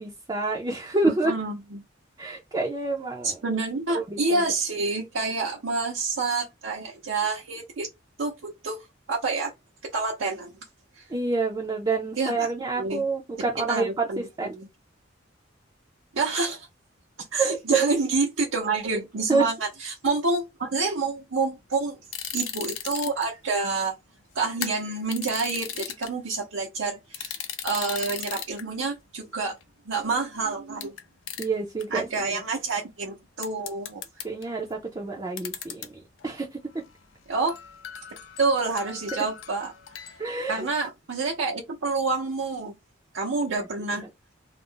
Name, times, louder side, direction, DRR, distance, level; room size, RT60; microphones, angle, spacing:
voice 1, 0.0-1.3 2.2-3.4 3.9-4.4 11.1-14.5 17.4-17.9 19.3-19.4 31.4-32.4 34.2-36.6 40.2-40.7, right 3 dB, 20° right, 0.5 m, -28 dB
voice 2, 1.0-1.5 3.2-7.9 8.2-9.5 9.8-10.5 11.0-11.1 12.2-12.5 12.8-13.0 13.7-14.7 16.1-16.7 17.3-22.0 22.3-23.9 24.3-27.4 27.6-29.6 29.9-30.9 31.9-34.0 37.3-37.5 38.4-39.7 40.5-42.7 43.1-44.1, right 3 dB, 80° right, 0.7 m, -28 dB
sound 1, 22.1-23.2 24.5-26.1 27.1-28.6 29.6-29.7 30.8-31.0 31.3-31.5 31.8-31.9 33.4-34.5 35.4-35.9 36.2-36.3 36.7-37.0 37.5-40.2, left 9 dB, 85° left, 0.5 m, -37 dB
2.4 x 2.0 x 3.7 m
head